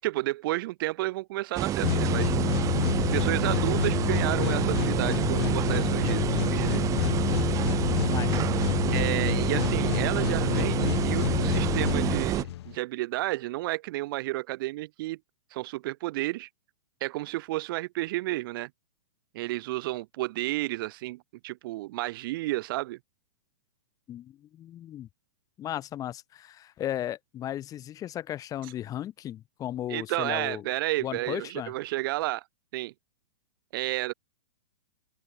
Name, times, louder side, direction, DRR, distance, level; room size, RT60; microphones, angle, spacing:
voice 1, 0.0-2.3 3.1-6.8 8.9-15.2 15.5-16.5 17.0-18.7 19.3-23.0 29.9-32.4 32.7-32.9 33.7-34.1, right 18 dB, 45° right, 1.1 m, -31 dB
sound 1, 1.6-12.4, right 12 dB, 20° right, 1.1 m, -28 dB
sound 2, 1.8-12.8, left 14 dB, 55° left, 0.5 m, -28 dB
voice 2, 8.1-8.6 24.1-25.1 25.6-30.6 31.0-31.7, left 12 dB, 20° left, 3.8 m, -35 dB
open air
hypercardioid pair, 145°, 16 cm